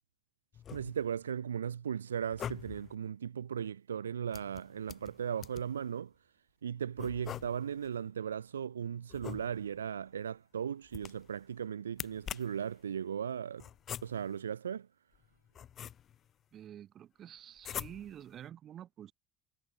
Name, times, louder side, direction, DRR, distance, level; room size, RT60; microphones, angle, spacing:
sound 1, 0.5-1.2 2.2-2.9 4.3-5.8 7.0-7.9 9.1-9.9 10.9-11.4 11.9-12.7 13.6-14.4 15.1-16.3 17.6-18.3, left 9 dB, 45° left, 2.7 m, -44 dB
voice 1, 0.7-6.1 6.6-13.6 14.0-14.9, right 8 dB, 80° right, 2.2 m, -37 dB
voice 2, 16.5-19.1, right 10 dB, 45° right, 7.2 m, -49 dB
figure-of-eight pair, 60°, 0 cm